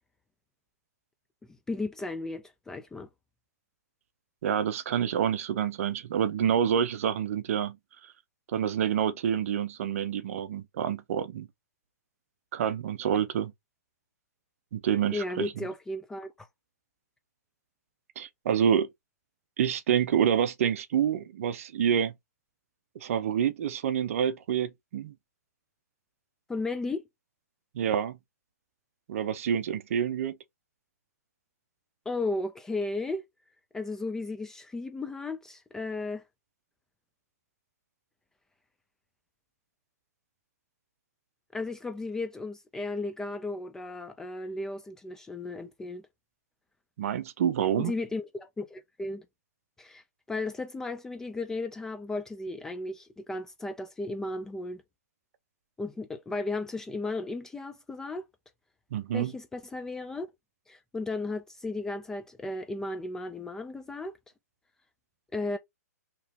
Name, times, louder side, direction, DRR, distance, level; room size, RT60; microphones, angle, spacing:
voice 1, 1.7-3.1 15.1-16.5 26.5-27.0 32.1-33.2 33.7-36.2 41.5-46.0 47.8-49.2 49.8-50.0 50.3-54.8 55.8-58.2 59.1-60.3 60.7-64.1 65.3-65.6, left 2 dB, 5° left, 0.3 m, -35 dB
voice 2, 4.4-7.8 8.5-11.5 12.5-13.5 14.7-15.5 18.2-18.9 19.6-22.1 23.0-25.1 27.7-28.2 29.1-30.4 47.0-47.9 58.9-59.3, right 9 dB, 55° right, 0.6 m, -27 dB
2.9 x 2.7 x 3.4 m
hypercardioid pair, 145°, 9 cm